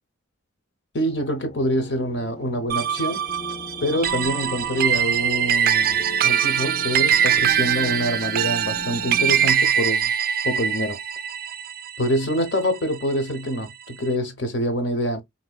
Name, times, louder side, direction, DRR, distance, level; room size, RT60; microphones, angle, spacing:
voice 1, 0.9-3.3 3.8-10.1 10.4-11.0 12.0-15.2, equal, 65° left, 0.8 m, -25 dB
sound 1, 1.1-9.5, left 2 dB, 30° left, 0.3 m, -39 dB
sound 2, 2.7-13.3, right 9 dB, 45° right, 0.3 m, -23 dB
3.7 x 2.7 x 2.2 m
head